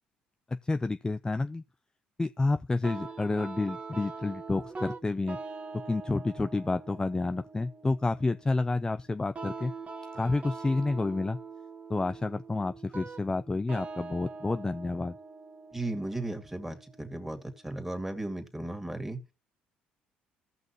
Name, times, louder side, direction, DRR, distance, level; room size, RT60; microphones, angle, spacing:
voice 1, 0.5-1.6 2.2-5.4 5.7-9.7 10.1-11.4 11.9-15.2, left 3 dB, 20° left, 0.5 m, -29 dB
sound 1, 2.8-17.8, right 4 dB, 35° right, 1.4 m, -44 dB
voice 2, 15.7-19.2, right 2 dB, 5° right, 2.5 m, -36 dB
16.0 x 5.9 x 3.1 m
hypercardioid pair, 55°, 4 cm